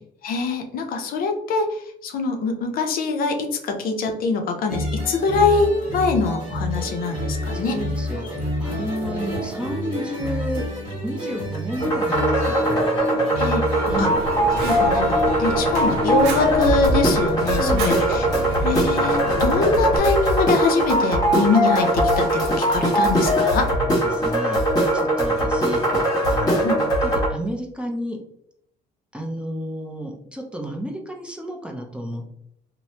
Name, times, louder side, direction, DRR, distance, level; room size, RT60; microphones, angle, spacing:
voice 1, 0.2-7.8 13.4-13.7 14.0-14.1 14.6-18.2 18.6-23.7 26.6-26.8, left 4 dB, 60° left, 4 dB, 0.5 m, -23 dB
sound 1, 4.7-16.7, equal, 30° right, 1.5 m, -29 dB
voice 2, 7.5-10.7 11.0-12.8 13.9-14.2 17.5-18.6 23.7-24.6 24.9-28.2 29.1-32.2, equal, 5° right, 0 dB, 0.5 m, -32 dB
sound 2, 11.8-27.3, equal, 20° left, 1.3 m, -21 dB
Fire, 13.9-20.0, right 2 dB, 70° right, 0.6 m, -30 dB
3.1 x 2.0 x 2.7 m, 0.70 s
cardioid pair, 110°, 17 cm